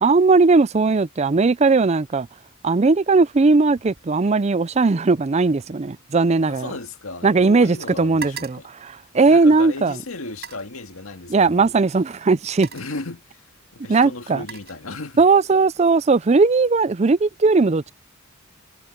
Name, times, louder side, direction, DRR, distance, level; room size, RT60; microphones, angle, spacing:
voice 1, 0.0-2.3 2.6-6.7 7.2-10.0 11.3-12.7 13.9-14.4 15.2-17.9, right 3 dB, 30° right, 0.4 m, -18 dB
sound 1, 3.7-4.1 4.4-7.5 7.8-9.7 10.3-10.8 11.8-12.0 12.4-13.1 13.9-15.3 15.7-16.1, right 7 dB, 50° right, 5.7 m, -42 dB
voice 2, 6.5-8.7 9.2-11.7 12.7-13.4 13.7-15.2, left 3 dB, 85° left, 2.0 m, -35 dB
head